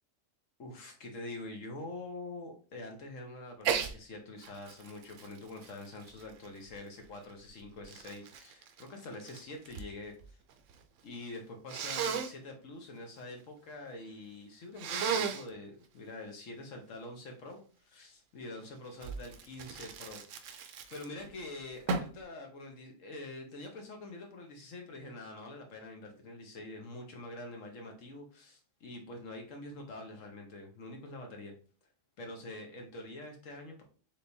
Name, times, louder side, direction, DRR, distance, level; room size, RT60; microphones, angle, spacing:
voice 1, 0.6-10.4 11.0-31.5 32.2-33.8, left 2 dB, 75° left, 3 dB, 1.4 m, -45 dB
Sneeze, 3.6-3.9 4.4-6.8 7.5-9.9 10.2-10.8 11.7-12.3 14.8-15.5 19.0-21.3 21.9-22.2, right 6 dB, 75° right, 0.9 m, -35 dB
4.5 x 3.6 x 2.7 m, 0.39 s
omnidirectional pair, 1.3 m